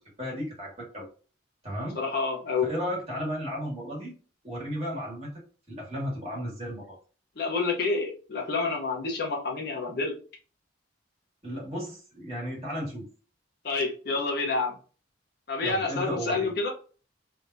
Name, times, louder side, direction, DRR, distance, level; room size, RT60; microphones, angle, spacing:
voice 1, 0.2-1.1 1.6-2.0 2.6-4.1 4.4-5.3 5.7-7.0 11.4-13.1 15.6-16.5, equal, 30° right, -4 dB, 1.8 m, -34 dB
voice 2, 1.9-2.7 7.4-10.1 13.6-14.8 15.5-16.7, left 3 dB, 50° left, -1 dB, 0.8 m, -28 dB
3.4 x 2.8 x 2.6 m, 0.38 s
head